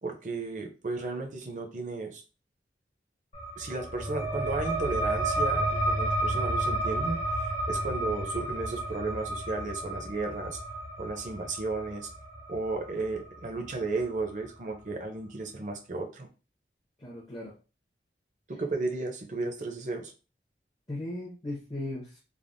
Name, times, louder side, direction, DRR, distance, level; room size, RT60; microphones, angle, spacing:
voice 1, 0.0-2.2 3.6-7.2 7.7-10.6 11.0-12.1 12.5-16.3 18.5-20.1, right 3 dB, 45° right, 3 dB, 0.6 m, -34 dB
sound 1, 3.3-14.5, right 1 dB, 45° left, 1.1 m, -32 dB
voice 2, 17.0-17.5 20.9-22.2, left 1 dB, 25° left, -4 dB, 0.7 m, -37 dB
3.4 x 2.1 x 2.5 m, 0.32 s
head